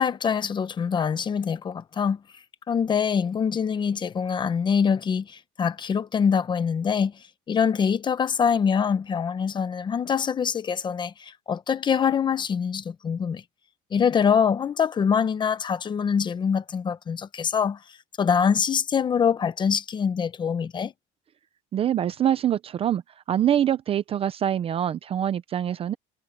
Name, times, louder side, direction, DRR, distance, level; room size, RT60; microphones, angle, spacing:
voice 1, 0.0-2.2 2.7-7.1 7.5-13.4 13.9-17.8 18.2-20.9, left 7 dB, 20° left, 0.8 m, -24 dB
voice 2, 21.7-23.0 23.3-25.9, right 10 dB, 25° right, 0.5 m, -24 dB
cardioid pair, 175°, 21 cm